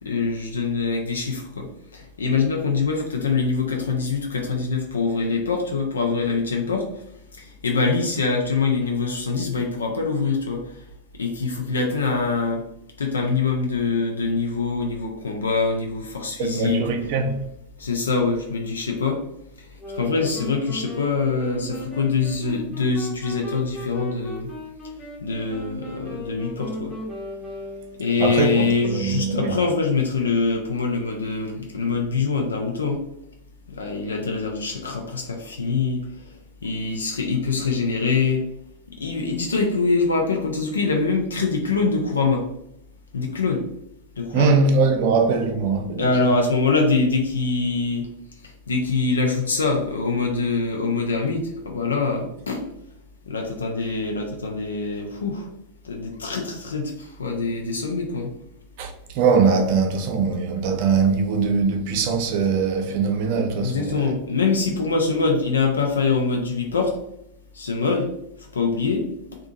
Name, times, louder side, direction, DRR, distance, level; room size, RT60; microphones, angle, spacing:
voice 1, 0.0-6.9 7.4-10.6 11.2-12.6 13.0-16.8 17.8-19.2 20.0-24.5 25.2-27.0 28.0-33.0 33.7-36.0 36.6-38.5 39.0-42.5 43.1-43.6 44.2-44.6 46.0-48.1 48.7-52.6 53.3-55.5 55.8-58.3 62.9-63.0 63.6-67.0 67.5-68.1 68.5-69.1, left 4 dB, 70° left, 0.4 m, -24 dB
voice 2, 16.4-17.4 28.2-29.6 44.3-46.1 58.8-64.1, right 5 dB, 50° right, 0.4 m, -21 dB
sound 1, 19.8-28.2, left 2 dB, 20° left, 0.8 m, -36 dB
2.6 x 2.3 x 2.6 m
figure-of-eight pair, 90°, 0 cm